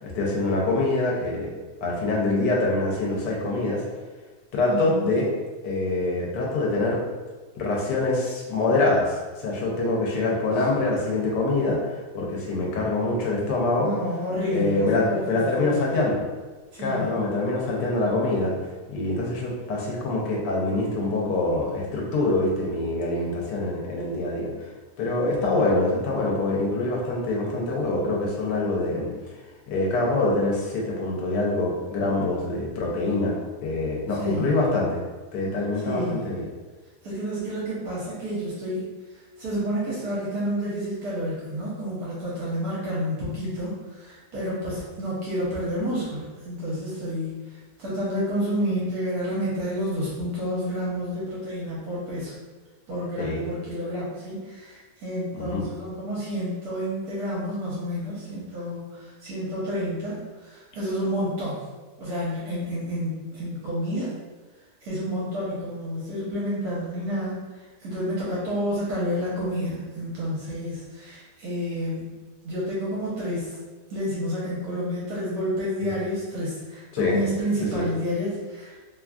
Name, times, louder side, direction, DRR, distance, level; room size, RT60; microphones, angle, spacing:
voice 1, 0.0-1.5 1.8-3.8 4.5-5.3 5.6-7.0 7.6-9.1 9.4-13.9 14.5-16.2 16.8-18.5 18.9-24.5 25.0-29.1 29.7-33.4 33.6-35.0 35.3-36.4 53.2-53.5 55.3-55.6 76.9-77.2 77.7-77.9, left 2 dB, 90° left, -2 dB, 1.3 m, -25 dB
voice 2, 4.7-5.1 10.5-10.6 13.8-16.0 16.7-17.1 34.1-34.6 35.8-36.3 37.0-38.8 39.1-52.3 52.9-61.7 62.0-64.2 64.8-67.4 67.8-72.1 72.4-73.6 73.9-78.7, equal, 70° right, -7 dB, 1.2 m, -30 dB
3.0 x 2.4 x 2.3 m, 1.3 s
omnidirectional pair, 1.8 m